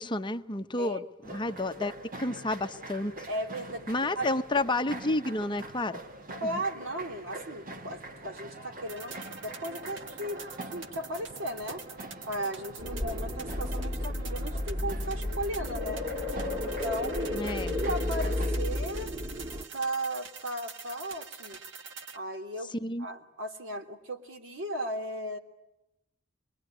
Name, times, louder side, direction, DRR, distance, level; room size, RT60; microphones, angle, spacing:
voice 1, 0.0-3.1 3.9-6.0 6.4-6.6 17.3-17.8 22.8-23.1, left 2 dB, 25° left, 8 dB, 0.9 m, -31 dB
sound 1, 1.2-18.6, right 1 dB, 45° right, 1.4 m, -44 dB
voice 2, 3.3-3.9 4.1-4.4 6.4-11.8 12.3-16.1 16.6-19.1 19.7-21.6 22.1-22.7 23.0-25.4, right 1 dB, 90° right, 4 dB, 3.1 m, -36 dB
sound 2, 8.9-22.2, right 5 dB, 65° right, 1.5 m, -45 dB
sound 3, 12.8-19.7, left 1 dB, 25° right, 1.8 m, -32 dB
25.5 x 22.5 x 10.0 m, 0.91 s
head